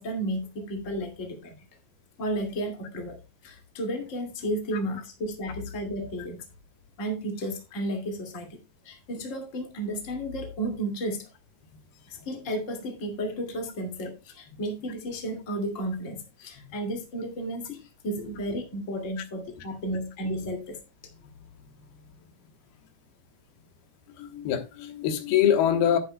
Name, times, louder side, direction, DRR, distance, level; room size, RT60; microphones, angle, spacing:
voice 1, 0.0-1.6 2.2-6.4 7.0-8.6 8.8-11.3 12.1-20.8, right 1 dB, 25° left, 2.1 m, -33 dB
voice 2, 24.2-26.0, left 9 dB, 85° left, 3.2 m, -24 dB
11.0 x 9.8 x 2.2 m
omnidirectional pair, 4.3 m